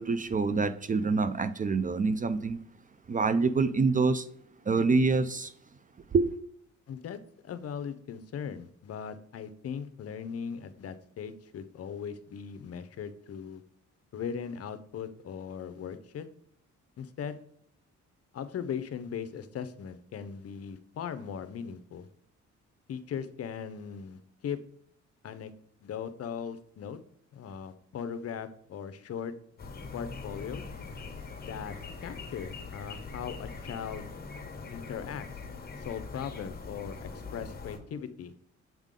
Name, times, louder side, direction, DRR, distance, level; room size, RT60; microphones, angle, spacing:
voice 1, 0.0-2.6 3.1-4.3 4.6-5.5 6.1-6.3, right 4 dB, 30° right, 0.4 m, -26 dB
voice 2, 6.9-7.2 7.4-13.6 14.1-16.3 17.0-17.4 18.3-22.1 22.9-24.6 25.2-25.5 25.8-27.0 27.3-29.3 29.9-30.6 31.4-31.7 32.0-34.1 34.7-35.3 35.8-38.3, left 7 dB, 50° left, 0.7 m, -39 dB
sound 1, 29.6-37.8, left 4 dB, 30° left, 1.2 m, -42 dB
7.4 x 3.6 x 3.7 m
cardioid pair, 90°, 30 cm